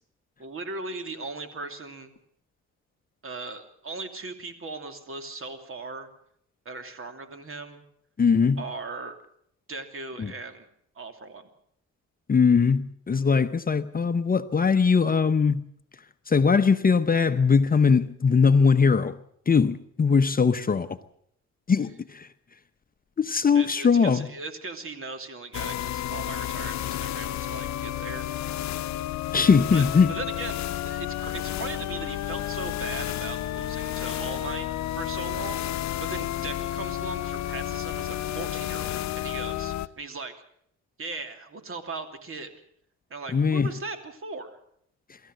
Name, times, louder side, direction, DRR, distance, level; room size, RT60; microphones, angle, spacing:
voice 1, 0.4-2.1 3.2-6.1 6.6-7.8 8.6-9.2 9.7-10.7 10.9-11.5 23.5-28.3 29.7-40.3 41.0-42.5 43.1-44.6, right 3 dB, 45° right, 2.9 m, -38 dB
voice 2, 8.2-8.6 10.2-10.3 12.3-15.6 16.3-19.2 19.5-21.0 21.7-22.3 23.2-24.3 29.3-30.1 43.3-43.7, left 5 dB, 30° left, 0.9 m, -21 dB
sound 1, 25.5-39.9, left 13 dB, 65° left, 0.8 m, -31 dB
24.0 x 14.0 x 8.0 m
cardioid pair, 90°, 30 cm